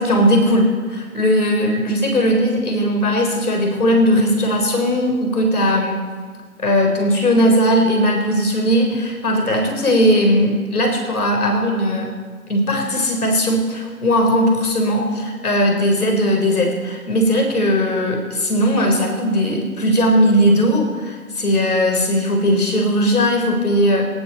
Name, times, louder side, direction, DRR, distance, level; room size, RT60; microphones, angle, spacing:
voice 1, 0.0-6.1 6.6-12.2 12.5-24.1, equal, 70° left, 2 dB, 4.3 m, -18 dB
17.0 x 14.5 x 4.3 m, 1.6 s
figure-of-eight pair, 165°, 46 cm